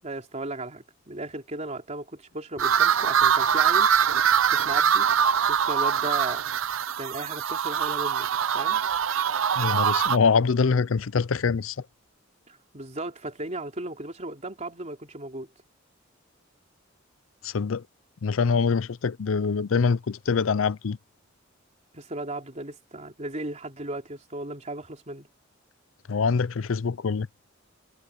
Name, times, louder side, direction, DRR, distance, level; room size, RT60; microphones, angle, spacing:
voice 1, 0.0-3.9 4.5-5.1 5.5-6.5 7.0-8.3 8.5-8.8 12.5-15.5 21.9-25.3, right 2 dB, 35° right, 3.6 m, -36 dB
sound 1, 2.6-10.2, right 8 dB, 90° right, 0.6 m, -23 dB
voice 2, 9.6-11.8 17.4-17.8 18.2-21.0 26.1-27.3, left 5 dB, 85° left, 0.6 m, -24 dB
head